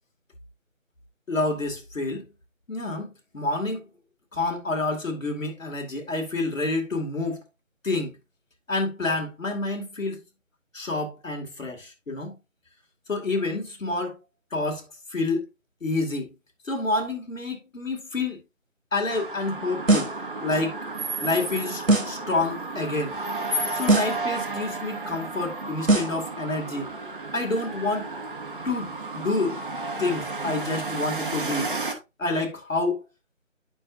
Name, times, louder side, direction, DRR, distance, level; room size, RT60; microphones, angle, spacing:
voice 1, 1.3-2.2 2.7-3.9 4.3-7.4 7.8-8.1 8.7-10.2 10.7-12.4 13.1-14.2 14.5-14.8 15.1-15.5 15.8-16.3 16.6-18.4 18.9-20.1 20.4-20.8 21.2-23.2 23.7-26.9 27.3-28.1 28.6-29.6 30.0-31.8 32.2-33.0, left 2 dB, 75° left, 2.5 m, -28 dB
sound 1, 19.1-31.9, right 2 dB, 40° right, 1.4 m, -32 dB
sound 2, 19.9-20.3 21.9-22.3 23.9-24.3 25.9-26.3, right 2 dB, 90° right, 2.5 m, -21 dB
9.1 x 6.3 x 2.7 m
figure-of-eight pair, 175°, 39 cm